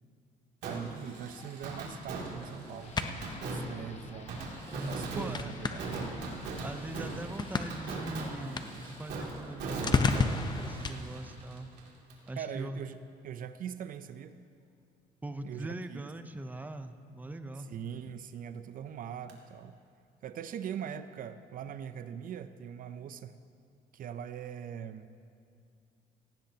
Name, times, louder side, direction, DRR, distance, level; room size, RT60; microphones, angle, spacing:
voice 1, 0.6-4.4 4.9-6.1 12.4-13.0 13.2-14.4 15.4-16.1 17.6-19.8 20.2-23.4 23.9-25.1, right 8 dB, 55° right, 11 dB, 0.6 m, -41 dB
Fireworks, 0.6-12.3 12.6-12.7 19.3-19.4, right 2 dB, 80° right, 2.7 m, -40 dB
sound 1, 1.0-10.9, left 4 dB, 25° left, 0.7 m, -36 dB
sound 2, 2.8-8.0, left 4 dB, 40° left, 1.2 m, -53 dB
voice 2, 4.7-5.5 6.6-11.7 12.3-12.8 15.2-17.7, right 2 dB, 10° right, 9 dB, 0.6 m, -41 dB
18.0 x 16.0 x 2.9 m, 2.4 s
cardioid pair, 110°, 17 cm